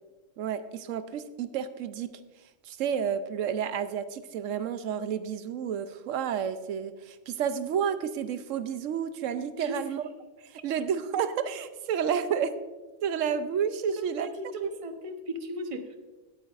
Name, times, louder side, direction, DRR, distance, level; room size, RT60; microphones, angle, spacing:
voice 1, 0.4-2.2 2.6-10.1 10.4-12.6 13.0-14.3 14.6-14.7, right 7 dB, 85° right, 12 dB, 1.0 m, -30 dB
voice 2, 9.6-10.0 14.0-16.0, right 1 dB, 30° right, 6 dB, 0.8 m, -37 dB
17.5 x 8.7 x 2.5 m, 1.3 s
omnidirectional pair, 1.3 m